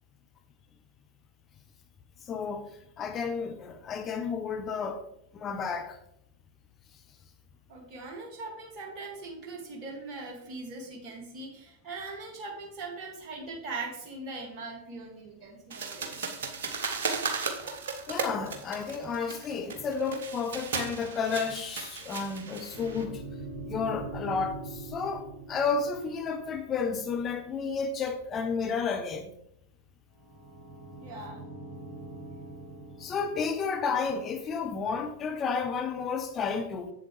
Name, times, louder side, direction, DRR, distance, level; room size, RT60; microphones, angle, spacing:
voice 1, 2.2-2.7 3.0-5.0 5.3-6.0 18.1-23.2 23.7-29.3 33.0-36.9, left 5 dB, 25° left, 0.7 m, -31 dB
voice 2, 7.7-16.2 31.0-31.4, right 3 dB, 35° right, 2.0 m, -41 dB
sound 1, 15.7-23.0, right 5 dB, 60° right, 0.9 m, -35 dB
sound 2, 22.7-27.1 30.1-33.5, right 2 dB, 20° right, 2.6 m, -43 dB
7.4 x 7.3 x 3.2 m
figure-of-eight pair, 90°, 0 cm